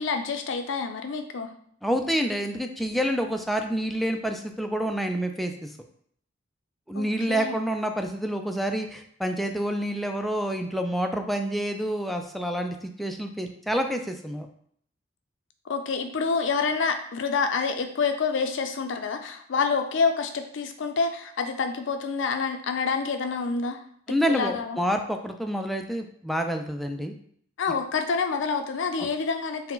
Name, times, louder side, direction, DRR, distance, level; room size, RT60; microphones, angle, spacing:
voice 1, 0.0-1.5 6.9-7.7 15.6-23.8 24.3-24.8 27.6-29.7, left 5 dB, 70° left, 6 dB, 0.5 m, -27 dB
voice 2, 1.8-5.7 6.9-14.5 24.1-27.1 29.0-29.1, equal, ahead, 4 dB, 0.3 m, -28 dB
4.6 x 2.1 x 3.8 m, 0.65 s
head